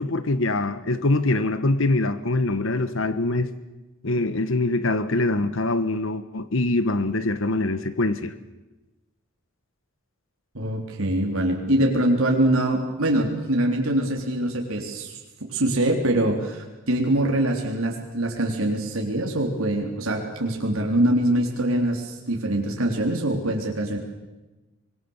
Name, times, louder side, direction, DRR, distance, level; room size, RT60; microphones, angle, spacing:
voice 1, 0.0-3.5 4.0-8.3, left 2 dB, 65° left, 13 dB, 1.2 m, -24 dB
voice 2, 10.5-24.0, right 1 dB, 75° right, 1 dB, 3.6 m, -24 dB
25.0 x 22.5 x 7.2 m, 1.1 s
head